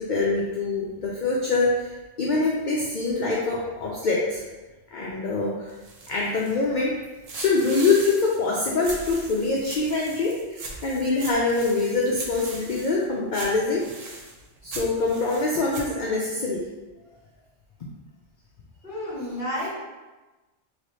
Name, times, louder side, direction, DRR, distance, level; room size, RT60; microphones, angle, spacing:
voice 1, 0.0-4.4 4.9-5.7 6.1-6.9 7.3-14.1 14.6-16.6, left 3 dB, 60° left, -3 dB, 0.5 m, -24 dB
sound 1, 5.7-6.8 7.3-13.1 13.3-15.9, right 3 dB, 75° right, 0.3 m, -40 dB
voice 2, 18.8-19.7, equal, 40° left, -9 dB, 1.8 m, -30 dB
3.2 x 3.0 x 2.9 m, 1.2 s
omnidirectional pair, 1.3 m